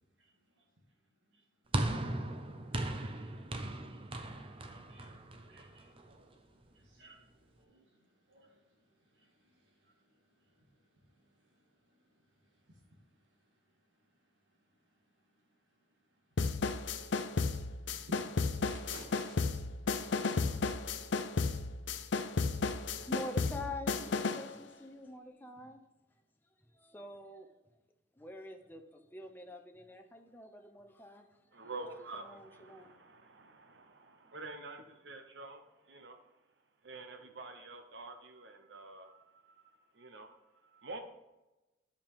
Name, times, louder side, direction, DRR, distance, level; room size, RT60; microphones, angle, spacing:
sound 1, 1.7-6.2, right 1 dB, 30° right, 0.7 m, -37 dB
voice 1, 3.0-3.3 3.9-4.3 4.6-5.1 5.5-6.3 6.7-7.9 8.3-8.6 9.1-9.5 9.8-9.9 18.1-18.2 18.6-19.6 19.9-20.2, right 1 dB, 85° right, 0 dB, 2.1 m, -57 dB
sound 2, 16.4-24.5, left 4 dB, 70° left, 0.6 m, -33 dB
voice 2, 23.0-25.8 26.7-27.5 28.2-31.3 32.1-33.0, left 2 dB, 10° left, 4 dB, 0.6 m, -46 dB
voice 3, 31.5-36.2 36.8-40.4 40.6-41.0, right 3 dB, 65° right, 6 dB, 0.8 m, -48 dB
11.5 x 5.1 x 3.6 m, 1.0 s
head